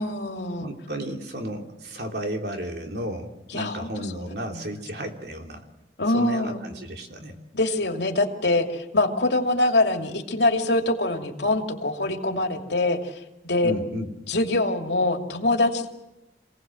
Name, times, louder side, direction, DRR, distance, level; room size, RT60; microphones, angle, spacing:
voice 1, 0.0-0.7 3.5-3.9 4.5-4.7 6.0-6.6 7.5-13.1 13.4-13.7 14.3-15.9, left 2 dB, 80° left, 3 dB, 2.6 m, -24 dB
voice 2, 0.6-5.6 6.1-7.4 13.6-14.1, equal, 70° right, 2 dB, 3.1 m, -33 dB
27.5 x 18.0 x 7.8 m, 0.95 s
head